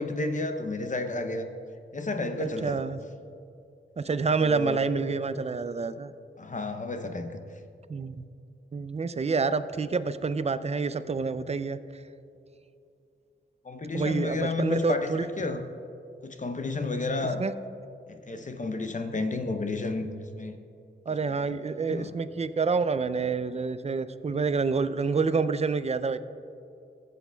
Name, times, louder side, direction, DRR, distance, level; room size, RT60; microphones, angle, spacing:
voice 1, 0.0-1.5 1.9-2.8 4.4-4.8 6.4-7.4 13.6-15.6 16.2-17.4 18.1-20.6 21.3-21.4 21.8-22.1, left 2 dB, 40° left, 6 dB, 0.6 m, -31 dB
voice 2, 2.4-3.0 4.0-6.1 7.9-8.2 8.7-12.0 13.9-15.2 17.4-17.5 21.1-26.2, right 4 dB, 35° right, 13 dB, 0.3 m, -28 dB
16.0 x 8.2 x 2.2 m, 2.6 s
wide cardioid pair, 100°, 20 cm